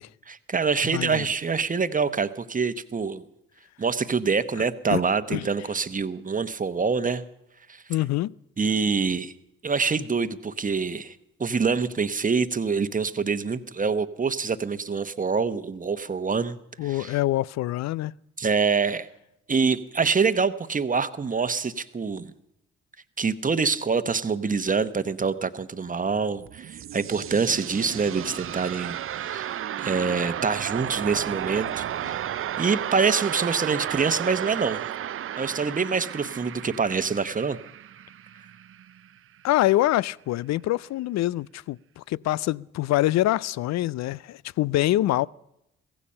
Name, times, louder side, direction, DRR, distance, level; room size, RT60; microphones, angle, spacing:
voice 1, 0.3-3.2 3.8-7.2 7.7-7.8 8.6-9.3 9.6-17.1 18.4-19.1 19.5-22.3 23.2-32.2 32.6-34.8 35.4-37.6, right 5 dB, 25° right, 1.0 m, -26 dB
voice 2, 0.9-1.2 4.9-5.0 5.3-5.5 7.9-8.3 16.8-18.1 39.4-45.3, left 15 dB, 60° left, 0.5 m, -25 dB
sound 1, 26.4-39.1, right 11 dB, 45° right, 0.5 m, -33 dB
16.0 x 15.5 x 5.6 m
hypercardioid pair, 50°, 30 cm